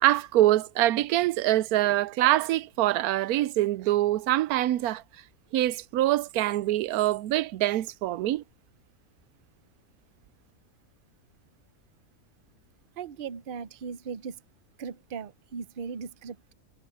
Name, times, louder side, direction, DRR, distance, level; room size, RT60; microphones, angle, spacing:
voice 1, 0.0-5.0 5.5-8.4, right 14 dB, 90° right, 1.1 m, -24 dB
voice 2, 13.0-14.4 14.8-16.5, right 6 dB, 45° right, 0.8 m, -38 dB
omnidirectional pair, 1.5 m